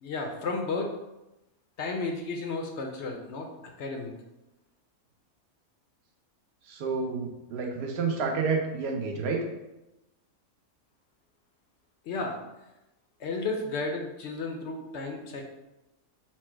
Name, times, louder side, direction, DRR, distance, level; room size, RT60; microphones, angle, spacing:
voice 1, 0.0-0.9 1.8-3.5 3.8-4.1 12.1-12.4 13.2-15.4, left 3 dB, 65° left, 2 dB, 0.7 m, -33 dB
voice 2, 6.7-9.4, right 4 dB, 60° right, 2 dB, 0.8 m, -29 dB
4.4 x 2.1 x 4.4 m, 0.95 s
omnidirectional pair, 1.5 m